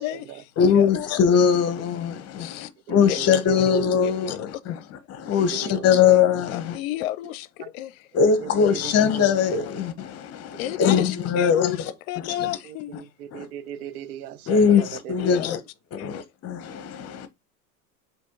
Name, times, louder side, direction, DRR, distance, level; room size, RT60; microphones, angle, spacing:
voice 1, 0.0-0.9 2.4-2.7 3.1-3.2 4.0-4.5 6.5-8.1 10.6-13.0 14.7-14.8 15.2-15.6 16.0-16.2, left 15 dB, 70° left, 0.5 m, -32 dB
voice 2, 0.6-6.8 8.1-11.8 12.3-12.5 13.3-13.5 14.5-15.6 15.9-17.3, left 7 dB, 35° left, 0.8 m, -21 dB
voice 3, 2.9-3.6 5.4-5.8 7.6-7.7 8.3-8.9 9.2-9.4 10.6-11.0 12.7-14.7 15.0-15.3, right 9 dB, 85° right, 0.7 m, -38 dB
4.3 x 2.7 x 3.7 m
supercardioid pair, 110°, 43 cm